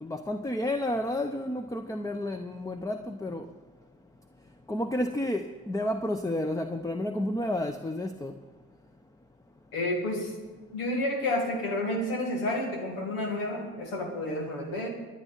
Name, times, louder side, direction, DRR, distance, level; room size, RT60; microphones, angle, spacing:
voice 1, 0.0-3.5 4.7-8.3, left 1 dB, 10° left, 0.8 m, -31 dB
voice 2, 9.7-10.3 10.7-14.9, left 1 dB, 90° left, 1.9 m, -30 dB
24.5 x 8.2 x 4.1 m
hypercardioid pair, 45°, 36 cm